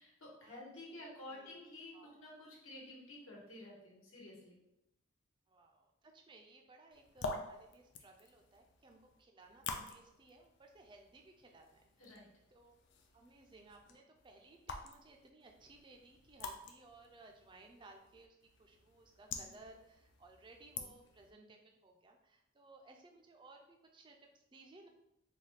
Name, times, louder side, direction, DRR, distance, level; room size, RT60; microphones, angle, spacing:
voice 1, 0.0-4.6 12.0-12.3, left 1 dB, 80° left, -3 dB, 1.2 m, -52 dB
voice 2, 0.9-1.6 1.9-2.3 5.5-9.6 9.9-12.1 12.5-12.7 13.1-24.9, right 2 dB, 20° right, 3 dB, 0.3 m, -60 dB
sound 1, 6.9-21.3, left 3 dB, 55° left, 0.4 m, -49 dB
4.0 x 2.2 x 3.2 m, 0.85 s
head